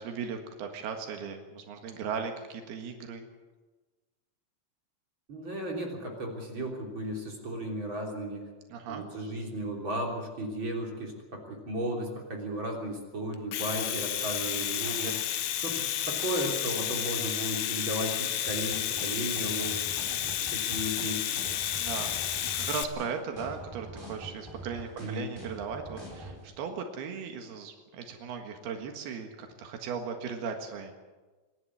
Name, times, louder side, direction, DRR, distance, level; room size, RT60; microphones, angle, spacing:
voice 1, 0.0-3.3 8.7-9.0 14.8-15.2 20.1-20.4 21.8-30.9, right 6 dB, 85° right, 5 dB, 3.7 m, -37 dB
voice 2, 5.3-8.4 8.9-15.1 15.5-19.8 20.5-21.4 25.0-25.3, right 1 dB, 30° right, 0 dB, 3.9 m, -35 dB
Domestic sounds home sounds, 13.3-22.8, left 11 dB, 70° left, 2.4 m, -31 dB
sound 1, 18.5-26.4, right 1 dB, 5° right, 6.0 m, -44 dB
26.5 x 11.0 x 9.9 m, 1.3 s
omnidirectional pair, 4.3 m